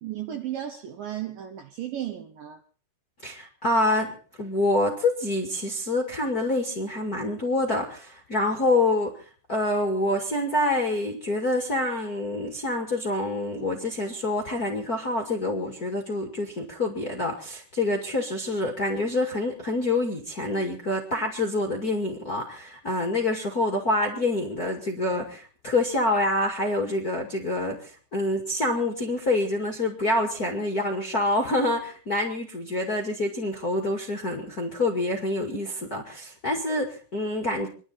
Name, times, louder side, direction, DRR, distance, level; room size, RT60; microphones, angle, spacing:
voice 1, 0.0-2.6, right 11 dB, 75° right, 2.1 m, -34 dB
voice 2, 3.2-37.7, left 2 dB, 35° left, 1.5 m, -26 dB
27.5 x 11.5 x 4.2 m
omnidirectional pair, 5.3 m